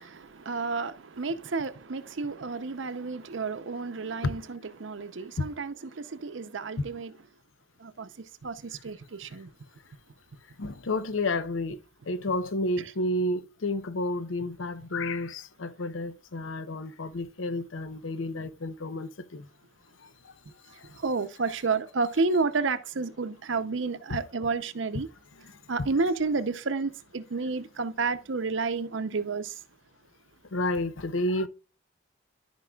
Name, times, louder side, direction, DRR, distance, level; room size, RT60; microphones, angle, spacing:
voice 1, 0.0-7.1 7.8-8.1 8.4-9.5 21.0-25.1 25.7-29.5, right 4 dB, 75° right, 0.7 m, -31 dB
voice 2, 10.6-11.8 12.1-19.5 24.1-24.2 25.8-25.9 30.5-31.5, left 2 dB, 90° left, 0.7 m, -30 dB
13.5 x 5.3 x 2.3 m
head